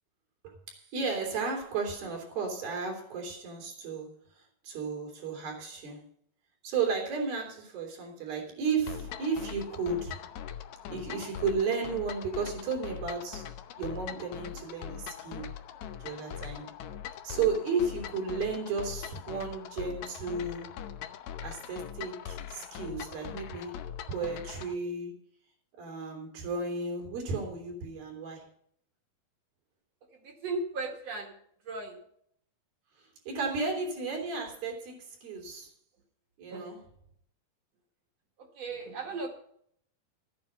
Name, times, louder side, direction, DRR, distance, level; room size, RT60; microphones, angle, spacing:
voice 1, 0.4-6.1 6.6-10.3 10.9-15.5 16.0-16.7 17.2-20.7 21.4-23.7 24.1-25.2 25.8-28.5 33.0-35.7 36.4-36.8, right 4 dB, 75° right, 1 dB, 5.2 m, -34 dB
sound 1, 8.9-24.7, left 9 dB, 75° left, 1.7 m, -42 dB
voice 2, 30.2-31.4 31.6-32.0 36.5-36.6 38.5-39.3, right 3 dB, 50° right, 2 dB, 2.9 m, -36 dB
13.5 x 9.6 x 5.5 m, 0.65 s
omnidirectional pair, 4.3 m